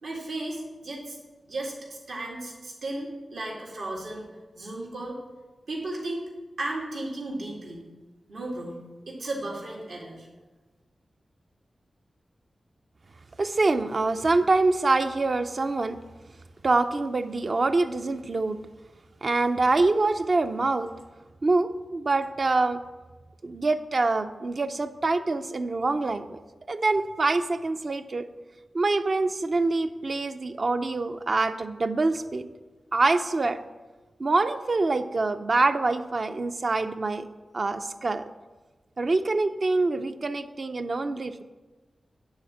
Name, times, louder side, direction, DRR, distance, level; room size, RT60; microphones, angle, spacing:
voice 1, 0.0-1.2 1.5-4.3 4.6-5.2 5.7-6.2 6.6-7.9 8.3-8.8 9.1-10.3, right 2 dB, 80° right, -3 dB, 2.0 m, -34 dB
voice 2, 13.4-16.0 16.6-18.6 19.2-20.9 21.4-22.8 23.4-26.4 26.7-28.3 28.7-32.5 32.9-33.6 34.2-37.3 37.5-38.2 39.0-41.4, right 3 dB, 50° right, 9 dB, 0.5 m, -25 dB
9.7 x 4.2 x 7.2 m, 1.2 s
wide cardioid pair, 85°, 0 cm